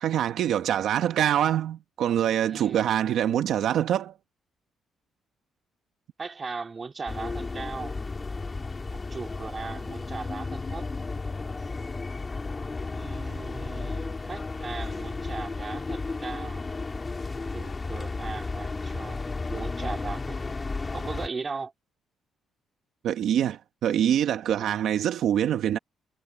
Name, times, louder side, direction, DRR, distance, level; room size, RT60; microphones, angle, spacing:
voice 1, 0.0-4.1 23.0-25.8, right 10 dB, 75° right, 1.1 m, -25 dB
voice 2, 2.5-2.9 6.2-7.9 8.9-10.9 12.9-16.6 17.5-20.6 20.9-21.7 24.5-24.9, right 4 dB, 35° right, 2.4 m, -38 dB
sound 1, 7.1-21.3, left 3 dB, 25° left, 2.6 m, -33 dB
cardioid pair, 90°, 0 cm